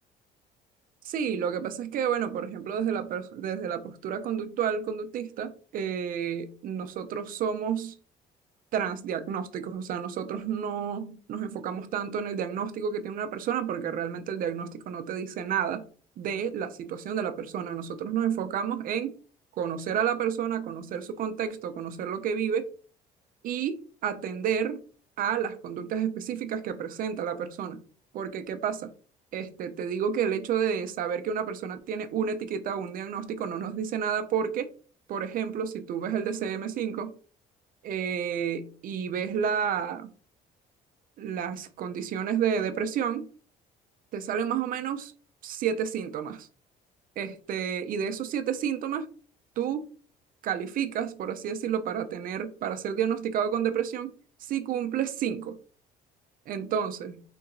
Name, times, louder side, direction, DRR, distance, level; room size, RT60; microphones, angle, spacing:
voice 1, 1.0-8.0 8.7-15.8 16.2-19.2 19.6-22.7 23.4-24.8 25.2-27.8 28.1-28.9 29.3-34.7 35.1-37.1 37.8-40.1 41.2-43.3 44.1-45.1 45.4-46.5 47.2-49.1 49.6-49.9 50.4-54.1 54.4-55.6 56.5-57.2, right 8 dB, 55° right, 0.5 m, -30 dB
3.7 x 2.8 x 2.5 m
cardioid pair, 110°, 17 cm